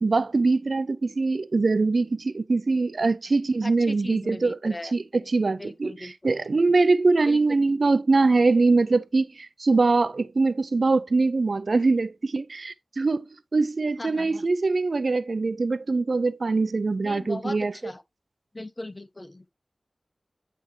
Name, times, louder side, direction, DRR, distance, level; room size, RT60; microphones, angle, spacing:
voice 1, 0.0-13.3 13.5-17.7, right 3 dB, 65° right, 0.3 m, -23 dB
voice 2, 3.6-4.9 5.5-6.3 7.2-7.4 14.0-14.5 17.0-18.0 18.5-19.5, left 2 dB, 30° left, 0.6 m, -39 dB
9.1 x 3.7 x 3.1 m
wide cardioid pair, 85°, 0 cm